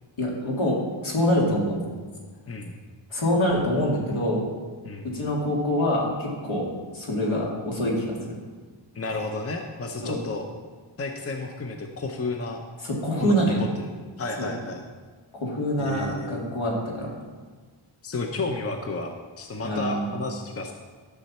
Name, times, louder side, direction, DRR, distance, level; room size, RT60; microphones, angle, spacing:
voice 1, 0.2-1.7 3.1-4.5 5.0-6.7 6.9-8.2 10.0-10.2 12.8-13.6 14.4-14.5 15.3-17.1 19.6-20.1, equal, 70° left, -3 dB, 2.7 m, -25 dB
voice 2, 2.5-2.8 4.8-5.1 8.9-10.5 11.0-12.6 13.2-13.9 14.2-14.8 15.8-16.5 18.0-20.7, left 3 dB, 30° left, 3 dB, 0.7 m, -32 dB
13.5 x 6.9 x 4.3 m, 1.5 s
wide cardioid pair, 135°, 49 cm